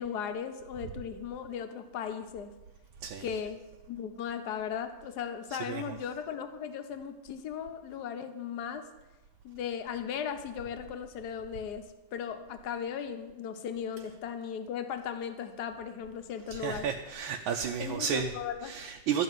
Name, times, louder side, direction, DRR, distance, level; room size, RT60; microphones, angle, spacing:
voice 1, 0.0-2.5 3.2-3.6 3.9-8.9 9.4-16.9 17.8-18.7, left 7 dB, 60° left, 8 dB, 1.4 m, -37 dB
voice 2, 16.5-18.3 18.6-19.2, right 7 dB, 85° right, 2 dB, 1.6 m, -32 dB
13.0 x 5.8 x 9.2 m, 1.1 s
omnidirectional pair, 2.1 m